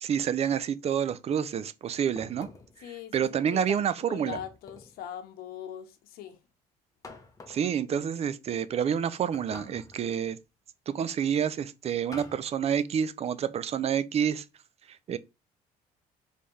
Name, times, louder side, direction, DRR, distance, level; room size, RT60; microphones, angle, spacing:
voice 1, 0.0-2.5 3.1-4.4 7.5-10.4 10.9-14.4 14.9-15.2, right 8 dB, 40° right, 0.4 m, -28 dB
sound 1, 2.2-2.8 4.3-5.0 7.0-7.7 9.3-10.1 12.1-12.5, left 3 dB, 20° left, 1.0 m, -47 dB
voice 2, 2.8-6.4, left 9 dB, 75° left, 0.9 m, -41 dB
4.2 x 3.5 x 3.1 m
cardioid pair, 90°, 16 cm